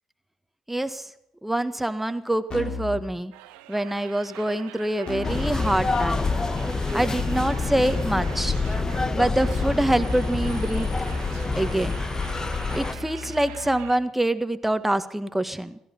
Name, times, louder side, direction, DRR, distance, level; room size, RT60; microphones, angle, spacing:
voice 1, 0.7-1.1 1.4-3.3 3.7-6.2 6.9-8.5 9.1-10.9 11.5-12.0 12.7-15.8, right 1 dB, 10° right, 10 dB, 1.8 m, -25 dB
Keyboard (musical), 2.5-3.1 5.1-13.9, left 4 dB, 50° left, 4.0 m, -38 dB
sound 1, 3.3-14.0, right 15 dB, 90° right, 0.8 m, -44 dB
sound 2, 5.2-12.9, left 3 dB, 30° left, 1.5 m, -26 dB
17.0 x 15.0 x 5.5 m, 0.82 s
hypercardioid pair, 55°, 2 cm